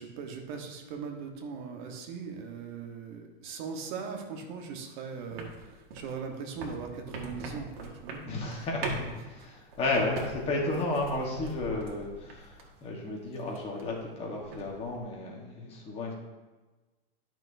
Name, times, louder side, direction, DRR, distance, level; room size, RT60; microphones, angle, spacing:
voice 1, 0.0-8.2, right 5 dB, 50° right, 3 dB, 1.3 m, -40 dB
sound 1, 5.3-12.9 13.2-14.1 14.3-15.0, right 2 dB, 75° right, 1.9 m, -41 dB
voice 2, 8.2-16.1, left 2 dB, 20° left, -2 dB, 1.3 m, -33 dB
12.0 x 6.1 x 2.7 m, 1.2 s
supercardioid pair, 165°, 30 cm